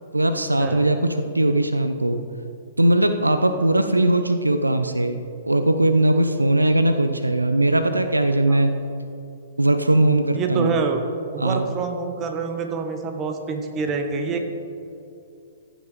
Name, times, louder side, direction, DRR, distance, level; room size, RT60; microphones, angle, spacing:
voice 1, 0.1-2.2 2.8-8.7 9.6-10.8 11.4-11.6, right 1 dB, 90° right, 8 dB, 0.5 m, -20 dB
voice 2, 10.3-11.0 11.3-14.5, right 5 dB, 25° right, 5 dB, 1.0 m, -26 dB
14.5 x 6.1 x 4.0 m, 2.6 s
figure-of-eight pair, 115°, 0 cm